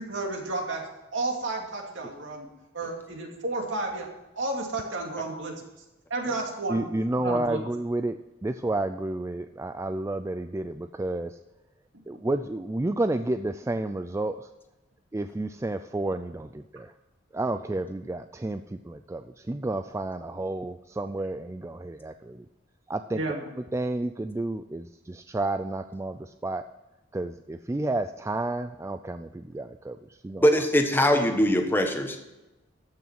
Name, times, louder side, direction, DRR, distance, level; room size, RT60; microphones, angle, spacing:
voice 1, 0.0-2.5 2.7-4.1 4.4-5.6 6.1-6.9 7.2-7.6 23.1-23.4, right 2 dB, 65° right, 1 dB, 2.5 m, -32 dB
voice 2, 6.7-11.4 12.1-14.5 15.1-16.9 17.3-22.5 22.9-23.4 23.7-26.6 27.1-30.0 30.2-30.4, right 2 dB, 15° right, 9 dB, 0.3 m, -31 dB
voice 3, 30.4-32.2, equal, 10° left, 4 dB, 1.2 m, -22 dB
14.0 x 6.2 x 5.9 m, 1.0 s
head